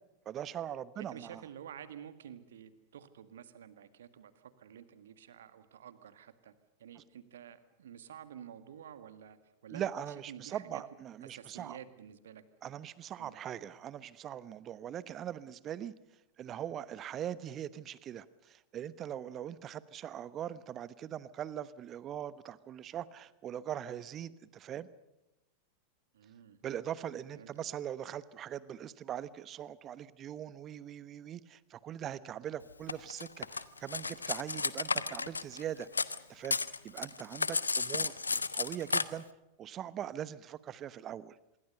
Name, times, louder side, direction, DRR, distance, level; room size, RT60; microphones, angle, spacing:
voice 1, 0.2-1.4 7.0-7.1 9.7-11.8 12.6-15.9 16.4-24.9 26.6-35.9 36.3-36.6 36.8-39.2 39.6-41.4, right 10 dB, 30° right, 18 dB, 1.0 m, -41 dB
voice 2, 1.0-6.5 6.8-9.4 9.6-9.8 10.3-10.8 11.2-12.4 13.2-13.4 26.1-26.6 27.3-27.5, right 9 dB, 60° right, 11 dB, 1.8 m, -50 dB
Cutlery silverware, 32.9-36.2 36.4-39.0, left 4 dB, 75° left, 0.8 m, -33 dB
26.0 x 22.5 x 6.8 m, 0.97 s
figure-of-eight pair, 90°, 0 cm